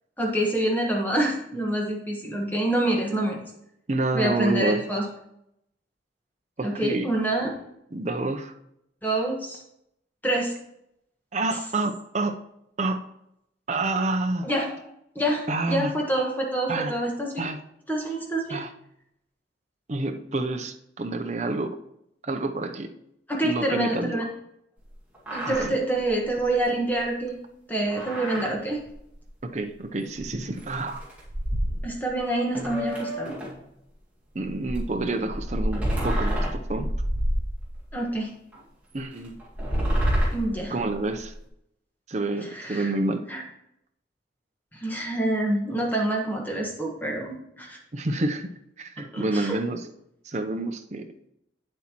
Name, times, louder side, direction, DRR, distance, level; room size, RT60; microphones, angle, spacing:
voice 1, 0.2-3.4 4.1-5.0 6.6-7.5 9.0-9.6 10.2-10.5 14.4-14.7 15.1-15.4 15.7-17.5 17.9-18.6 23.3-24.3 25.3-27.4 27.7-28.8 31.8-33.4 37.9-38.3 40.3-40.7 42.4-42.9 43.3-43.4 44.7-47.8 49.1-49.5, right 1 dB, 10° left, -1 dB, 1.3 m, -26 dB
voice 2, 3.9-4.8 6.6-7.1 7.9-8.5 11.3-12.4 12.8-13.1 13.7-14.5 15.5-15.9 16.7-17.0 17.4-17.6 18.5-18.7 19.9-21.8 22.2-22.9 23.4-24.2 25.5-25.7 29.4-31.0 34.3-36.9 38.9-39.4 40.7-41.3 42.1-43.3 47.9-48.5 48.8-49.8 50.2-51.1, right 2 dB, 35° right, 5 dB, 0.6 m, -28 dB
sound 1, 24.9-25.0 25.1-25.7 26.0-26.1 26.4-26.5 27.9-28.5 28.9-29.0 30.1-30.2 30.6-32.1 32.5-33.6 34.4-37.9 38.5-38.6 39.4-41.3, equal, 10° right, 1.9 m, -28 dB
8.5 x 7.7 x 3.0 m, 0.79 s
head